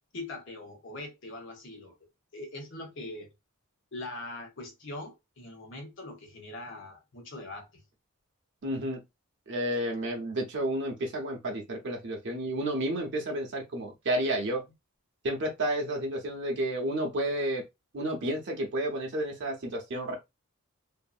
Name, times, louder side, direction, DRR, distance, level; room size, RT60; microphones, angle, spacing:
voice 1, 0.1-1.9 2.3-3.3 3.9-7.8, left 2 dB, 60° left, 1.0 m, -42 dB
voice 2, 8.6-9.0 9.5-14.6 15.2-17.6 17.9-20.2, right 1 dB, 55° right, 0.7 m, -31 dB
2.6 x 2.5 x 2.4 m
head